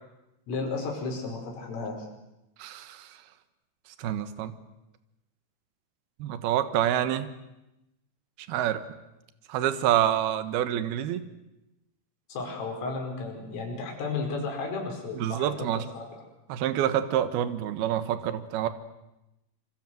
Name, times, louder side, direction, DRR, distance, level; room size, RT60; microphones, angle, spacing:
voice 1, 0.5-2.0 12.3-15.7 15.9-16.1, left 3 dB, 75° left, 2 dB, 7.8 m, -33 dB
voice 2, 2.6-3.1 4.0-4.5 6.2-7.3 8.5-8.8 9.5-11.2 15.2-15.8 16.5-18.7, right 11 dB, 65° right, 11 dB, 2.6 m, -27 dB
26.5 x 26.0 x 7.8 m, 0.94 s
omnidirectional pair, 5.9 m